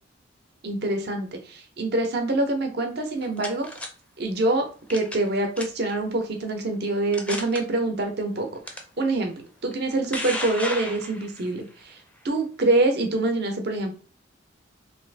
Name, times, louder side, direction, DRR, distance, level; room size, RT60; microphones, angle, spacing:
voice 1, 0.6-3.7 4.2-9.3 9.6-12.0 12.2-13.9, right 2 dB, 55° right, 4 dB, 0.7 m, -25 dB
sound 1, 3.0-3.9 4.9-5.3 5.6-5.9 6.5-6.6 7.1-7.6 8.7-8.8 9.7-11.5, left 1 dB, 5° left, 0.4 m, -33 dB
3.0 x 2.4 x 3.3 m, 0.38 s
head